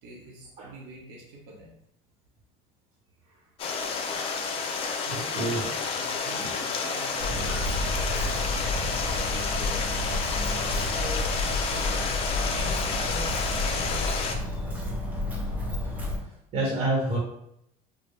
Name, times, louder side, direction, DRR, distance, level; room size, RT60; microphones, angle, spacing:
voice 1, 0.0-1.7 5.1-7.8 10.9-11.4 12.3-14.2, equal, 75° right, -2 dB, 0.9 m, -43 dB
Stream, 3.6-14.4, left 5 dB, 40° left, 0.5 m, -30 dB
voice 2, 5.3-5.6 6.3-6.6 9.7-9.9 16.5-17.2, right 2 dB, 40° right, -2 dB, 1.0 m, -29 dB
Walk footsteps, 7.2-16.2, left 1 dB, 10° right, 0.9 m, -30 dB
4.6 x 2.1 x 3.2 m, 0.76 s
cardioid pair, 140°, 15 cm